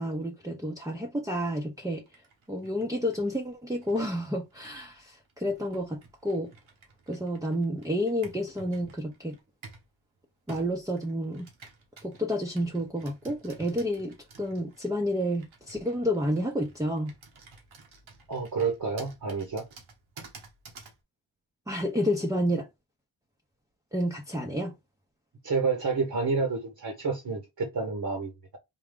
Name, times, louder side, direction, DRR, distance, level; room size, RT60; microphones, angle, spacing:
voice 1, 0.0-2.0 2.5-6.5 7.1-9.4 10.5-11.5 12.0-17.1 21.7-22.7 23.9-24.8, equal, 5° right, 0.7 m, -30 dB
Computer keyboard, 2.1-9.9 10.5-21.0, right 4 dB, 80° right, 1.3 m, -52 dB
voice 2, 18.3-19.6 25.4-28.6, right 4 dB, 50° right, 1.1 m, -29 dB
3.6 x 2.3 x 3.6 m
cardioid pair, 50°, 47 cm